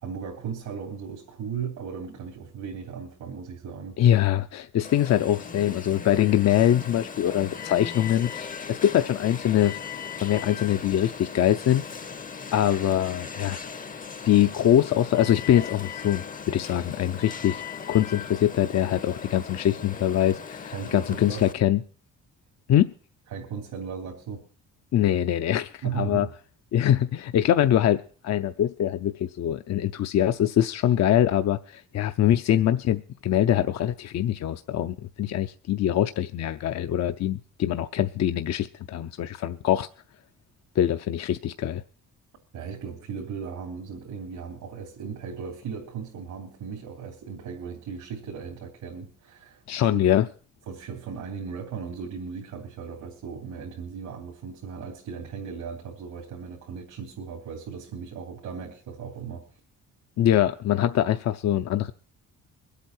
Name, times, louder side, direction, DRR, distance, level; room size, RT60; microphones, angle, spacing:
voice 1, 0.0-4.0 20.7-21.4 23.3-24.4 25.8-26.3 42.5-49.6 49.9-50.0 50.7-59.4, right 6 dB, 85° right, -2 dB, 3.2 m, -36 dB
voice 2, 4.0-9.8 10.2-11.8 12.5-13.6 14.2-17.6 17.9-21.8 22.7-22.9 24.9-26.3 26.7-39.9 40.8-41.8 49.7-50.3 60.2-61.9, left 11 dB, 60° left, 8 dB, 0.7 m, -23 dB
Alarm, 4.8-21.5, left 6 dB, 25° left, 0.7 m, -38 dB
23.0 x 8.4 x 4.4 m, 0.39 s
cardioid pair, 90°, 30 cm